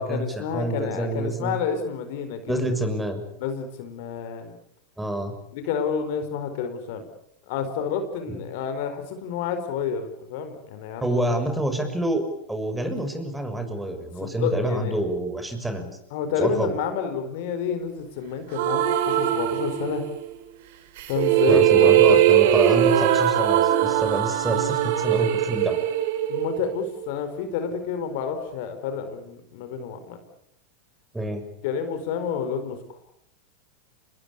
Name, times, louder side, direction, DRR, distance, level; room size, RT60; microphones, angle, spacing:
voice 1, 0.0-2.6 3.4-4.5 5.5-7.0 7.5-11.2 14.2-15.0 16.1-20.0 21.1-22.2 26.3-30.2 31.6-33.0, left 6 dB, 60° left, 8 dB, 4.6 m, -29 dB
voice 2, 0.5-1.6 2.5-3.2 5.0-5.3 8.3-8.4 11.0-12.2 12.5-16.0 16.4-16.7 21.5-25.8 31.1-31.4, right 1 dB, 5° right, 7 dB, 6.4 m, -27 dB
sound 1, 18.5-20.2 21.0-27.1, right 11 dB, 65° right, 3.7 m, -20 dB
27.0 x 21.5 x 8.4 m, 0.73 s
hypercardioid pair, 95°, 0 cm